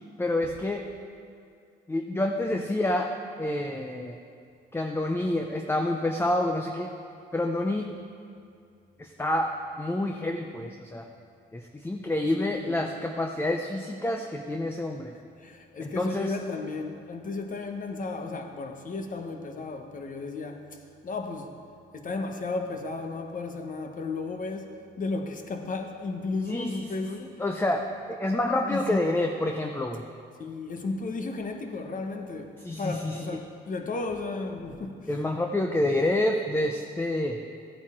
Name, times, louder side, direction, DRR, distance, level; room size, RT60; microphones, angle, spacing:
voice 1, 0.2-0.9 1.9-3.1 3.4-4.2 4.7-6.9 7.3-7.9 9.0-11.1 11.5-15.2 15.8-16.3 26.5-26.9 27.2-30.0 32.6-33.4 35.1-37.4, left 1 dB, 10° left, 3 dB, 0.6 m, -28 dB
voice 2, 12.4-12.8 15.4-20.7 21.0-21.5 21.9-27.2 28.7-29.0 30.4-32.5 32.8-35.1, left 3 dB, 40° left, 5 dB, 1.2 m, -34 dB
14.5 x 8.9 x 3.7 m, 2.4 s
cardioid pair, 90°, 20 cm